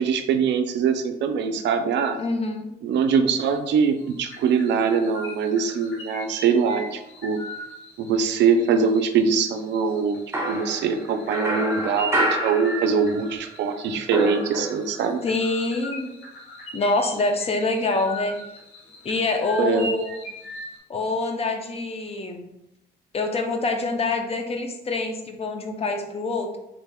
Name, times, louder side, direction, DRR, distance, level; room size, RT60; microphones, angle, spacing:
voice 1, 0.0-2.2 2.8-7.4 8.0-10.2 10.5-15.2 19.6-19.9, right 6 dB, 75° right, 8 dB, 0.4 m, -23 dB
voice 2, 2.2-2.7 15.2-16.1 16.7-18.4 19.0-20.2 20.9-22.5 23.1-26.6, left 3 dB, 35° left, 5 dB, 0.5 m, -25 dB
sound 1, 3.4-3.7 4.0-20.8, equal, 90° left, 1.2 m, -40 dB
sound 2, 10.3-13.3 13.6-15.1, right 1 dB, 15° right, 0.6 m, -28 dB
3.6 x 3.3 x 2.2 m, 0.86 s
cardioid pair, 100°, 18 cm